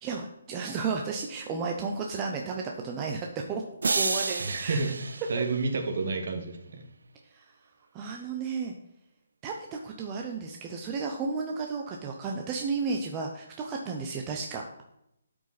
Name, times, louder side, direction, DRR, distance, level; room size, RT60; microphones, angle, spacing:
voice 1, 0.0-3.6 3.9-4.8 5.4-5.5 7.3-7.4 7.9-8.7 9.4-14.6, right 4 dB, 15° right, 1 dB, 0.5 m, -33 dB
sound 1, 3.8-6.1, right 4 dB, 80° right, 0.3 m, -31 dB
voice 2, 4.4-6.8, right 3 dB, 45° right, 5 dB, 1.3 m, -30 dB
12.0 x 5.1 x 4.1 m, 0.80 s
hypercardioid pair, 175°, 0 cm